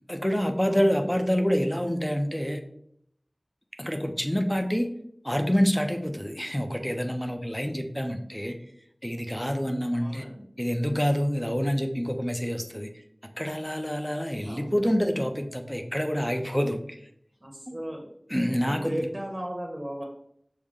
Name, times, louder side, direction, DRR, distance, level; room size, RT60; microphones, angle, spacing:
voice 1, 0.1-2.6 3.8-4.9 5.2-8.6 9.0-10.2 10.6-12.9 13.4-17.0 17.7-17.8 18.3-19.0, equal, 10° left, 6 dB, 0.6 m, -27 dB
voice 2, 0.6-1.0 9.9-10.5 14.4-14.9 17.4-18.1 18.3-20.0, equal, 30° right, -1 dB, 0.9 m, -36 dB
6.3 x 2.2 x 3.6 m, 0.72 s
wide cardioid pair, 40°, 0 cm